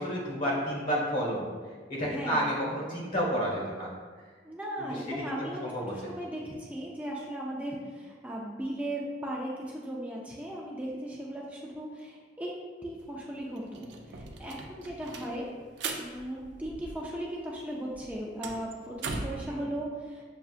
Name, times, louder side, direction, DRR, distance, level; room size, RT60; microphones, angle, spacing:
voice 1, 0.0-3.9 4.8-5.9 19.5-19.7, equal, 50° left, -3 dB, 1.2 m, -31 dB
voice 2, 2.0-2.5 4.4-12.5 12.8-15.5 16.0-20.2, right 1 dB, 10° right, -3 dB, 0.4 m, -37 dB
sound 1, 13.0-13.1 13.4-17.3 17.6-19.5, right 3 dB, 70° right, 0.4 m, -40 dB
6.6 x 2.3 x 2.4 m, 1.5 s
head